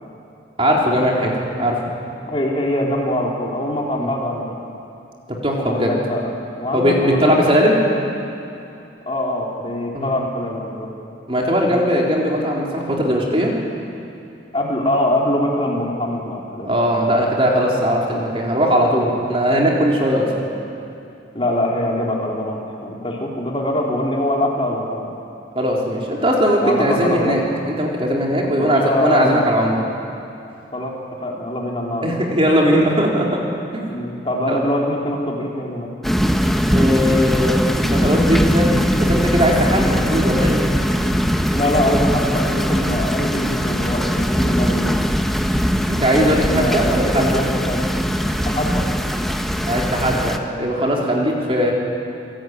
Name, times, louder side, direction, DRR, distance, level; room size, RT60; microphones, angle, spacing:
voice 1, 0.6-1.3 1.6-1.9 3.9-4.1 5.3-5.9 6.7-7.8 9.9-10.1 11.3-13.5 16.6-20.3 25.6-29.8 32.0-33.4 33.7-33.9 34.5-34.6 36.7-38.7 39.0-40.6 45.9-47.4 49.7-51.7, equal, 30° right, -2 dB, 3.9 m, -19 dB
voice 2, 2.2-4.5 5.6-6.3 6.6-7.6 9.1-10.9 14.5-16.7 20.2-20.4 21.3-25.1 26.6-27.4 28.5-29.4 30.7-30.9 31.2-32.1 33.9-35.9 41.5-44.9 46.1-47.8 48.5-48.8, left 1 dB, 30° left, -2 dB, 3.7 m, -23 dB
sound 1, 36.0-50.4, equal, ahead, 1.0 m, -20 dB
29.0 x 18.5 x 9.5 m, 2.8 s
head